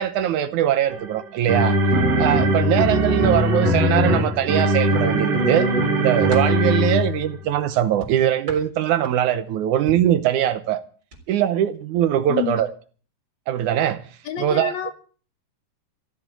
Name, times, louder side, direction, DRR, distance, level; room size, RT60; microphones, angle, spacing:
voice 1, 0.0-1.8 2.2-5.7 6.0-10.8 11.3-12.7 13.5-14.0 14.4-14.7, right 11 dB, 70° right, 2.1 m, -21 dB
sound 1, 0.9-7.3, right 1 dB, 50° right, 3.5 m, -20 dB
sound 2, 4.5-5.3 5.8-6.6 8.0-9.4 9.9-10.2 11.0-11.2 11.6-11.8, right 1 dB, 25° right, 4.3 m, -38 dB
voice 2, 12.3-12.6 14.3-14.9, left 10 dB, 65° left, 2.1 m, -28 dB
15.5 x 7.6 x 8.9 m
omnidirectional pair, 3.9 m